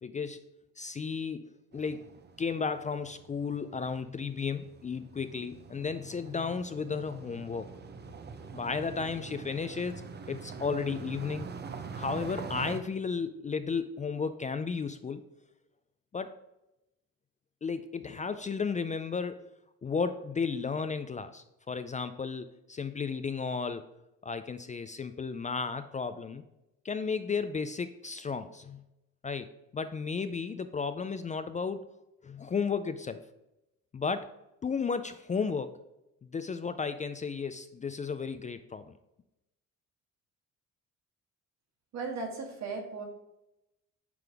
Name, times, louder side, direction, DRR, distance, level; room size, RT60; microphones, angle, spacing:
voice 1, 0.0-0.4 0.8-2.1 2.4-7.7 8.1-8.2 8.5-11.5 11.9-15.2 16.1-16.3 17.6-19.5 19.8-23.8 24.2-26.4 26.8-28.8 29.2-31.8 32.2-33.2 33.9-34.3 34.6-35.7 36.3-38.9, left 5 dB, 25° left, 11 dB, 0.4 m, -34 dB
sound 1, 1.7-12.8, right 5 dB, 35° right, 0.6 m, -44 dB
voice 2, 41.9-43.0, right 4 dB, 65° right, 1 dB, 1.7 m, -36 dB
9.2 x 3.7 x 3.4 m, 0.90 s
cardioid pair, 90°, 30 cm